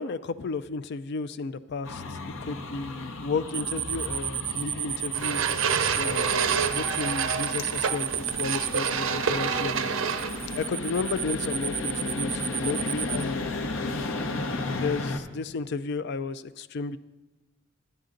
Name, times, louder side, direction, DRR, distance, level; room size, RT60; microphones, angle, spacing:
voice 1, 0.0-5.4 6.0-9.9 10.5-13.5 14.6-17.0, left 4 dB, 60° left, 14 dB, 0.4 m, -33 dB
sound 1, 1.8-15.2, left 2 dB, 75° left, 0.9 m, -35 dB
sound 2, 3.5-8.9 10.1-13.2, right 10 dB, 25° right, 0.3 m, -31 dB
sound 3, 5.1-10.6, right 6 dB, 80° right, 0.6 m, -28 dB
12.0 x 9.2 x 3.8 m, 1.2 s
head